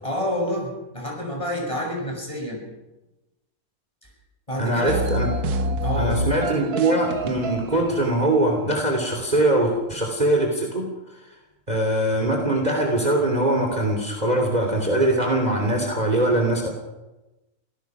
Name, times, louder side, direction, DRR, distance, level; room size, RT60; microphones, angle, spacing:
voice 1, 0.0-2.6 4.0-4.1 4.5-5.0 5.8-6.2, equal, 20° left, 0 dB, 6.8 m, -28 dB
voice 2, 4.6-5.3 6.0-10.9 11.7-16.7, right 1 dB, 25° right, 2 dB, 3.2 m, -22 dB
sound 1, 4.9-8.1, right 1 dB, 90° right, 1.6 m, -27 dB
25.5 x 17.5 x 6.1 m, 1.0 s
omnidirectional pair, 1.6 m